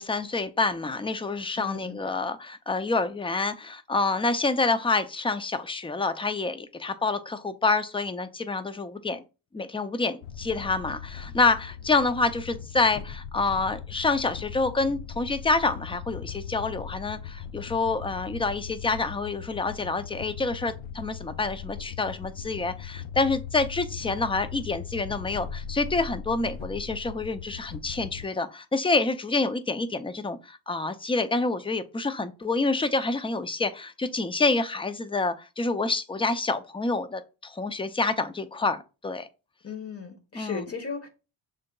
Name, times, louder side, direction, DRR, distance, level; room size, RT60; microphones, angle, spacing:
voice 1, 0.0-9.2 9.5-39.3 40.3-40.7, left 3 dB, 10° left, 0.4 m, -27 dB
voice 2, 1.6-2.0 39.6-41.1, left 5 dB, 30° left, 1.3 m, -36 dB
sound 1, 10.2-28.2, left 7 dB, 80° left, 0.6 m, -39 dB
6.0 x 3.8 x 2.3 m
cardioid pair, 80°, 49 cm